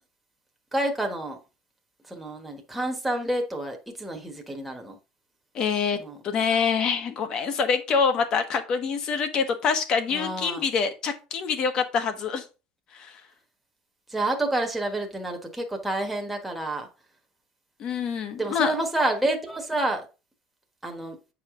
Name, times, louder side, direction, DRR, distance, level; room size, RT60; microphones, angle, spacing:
voice 1, 0.7-1.4 2.1-5.0 5.9-6.2 10.1-10.6 14.1-16.9 18.4-20.1 20.8-21.2, right 1 dB, 5° right, 1.3 m, -29 dB
voice 2, 5.5-6.0 6.2-12.4 12.9-13.2 17.8-18.7, left 6 dB, 40° left, 1.2 m, -25 dB
8.8 x 4.9 x 3.7 m
cardioid pair, 155°, 2 cm